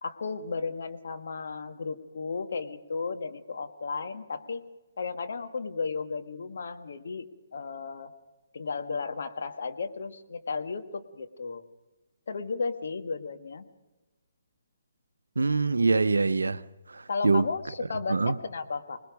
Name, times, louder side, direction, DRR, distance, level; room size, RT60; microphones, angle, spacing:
voice 1, 0.0-4.6 5.0-8.1 8.5-11.6 12.3-13.7 17.1-19.0, left 4 dB, 55° left, 1.6 m, -34 dB
voice 2, 15.4-16.6 16.9-17.5 18.1-18.4, right 3 dB, 70° right, 0.7 m, -24 dB
25.5 x 20.5 x 5.2 m
figure-of-eight pair, 135°, 0 cm